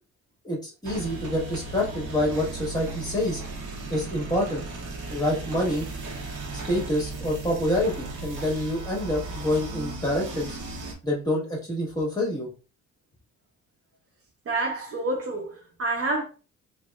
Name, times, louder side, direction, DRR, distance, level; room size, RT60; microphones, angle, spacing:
voice 1, 0.4-3.4 3.9-4.7 5.1-5.8 6.6-10.6 11.0-12.5, left 1 dB, 15° left, 1.5 m, -27 dB
sound 1, 0.8-10.9, right 2 dB, 85° right, 0.9 m, -36 dB
voice 2, 14.5-16.2, right 2 dB, 50° right, 0.9 m, -28 dB
3.4 x 2.1 x 2.3 m
cardioid pair, 90°, 30 cm